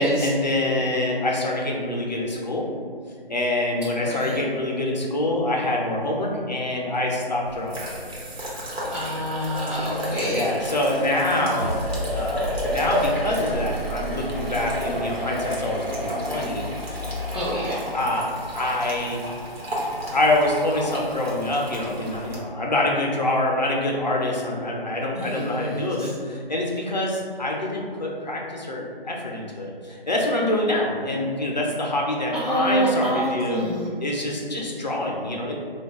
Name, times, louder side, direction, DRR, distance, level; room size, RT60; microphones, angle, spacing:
voice 1, 0.0-2.7 3.3-7.9 10.3-17.1 17.9-19.2 20.1-33.6 34.0-35.6, left 1 dB, 45° left, -1 dB, 0.5 m, -25 dB
voice 2, 4.0-4.4 8.9-10.5 17.3-17.8 25.1-26.1 32.3-33.9, right 1 dB, 45° right, -9 dB, 0.6 m, -26 dB
sound 1, 7.4-22.4, equal, 85° right, 1.0 m, -32 dB
sound 2, 11.3-21.0, equal, 65° right, 1.2 m, -35 dB
2.2 x 2.2 x 3.4 m, 2.1 s
figure-of-eight pair, 180°, 30 cm